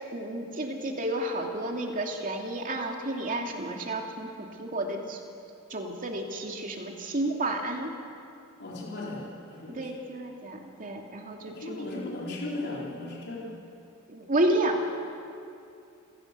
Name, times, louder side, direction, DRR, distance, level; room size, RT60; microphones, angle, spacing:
voice 1, 0.1-5.2 5.7-7.9 9.7-11.9 14.1-14.9, right 1 dB, 40° right, 1 dB, 2.5 m, -31 dB
voice 2, 8.6-9.9 11.5-13.6, left 2 dB, 50° left, -5 dB, 4.0 m, -37 dB
28.5 x 16.5 x 6.8 m, 2.6 s
head